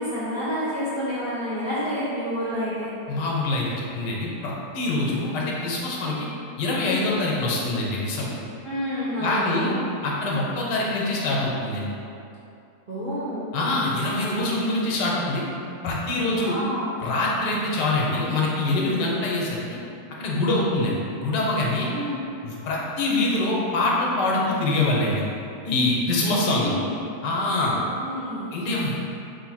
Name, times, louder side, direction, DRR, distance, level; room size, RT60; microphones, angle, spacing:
voice 1, 0.0-3.0 8.6-9.8 12.9-13.5 16.2-17.0 21.9-22.2 26.2-27.1 27.7-28.5, equal, 60° right, -11 dB, 0.5 m, -29 dB
voice 2, 3.1-6.1 6.6-8.3 9.2-9.7 10.0-11.9 13.5-15.4 15.8-16.5 17.0-19.8 20.2-21.9 22.4-25.2 25.6-26.8 27.2-27.7 28.5-29.0, left 2 dB, 85° left, -3 dB, 1.3 m, -24 dB
3.5 x 2.6 x 4.0 m, 2.7 s
omnidirectional pair, 1.8 m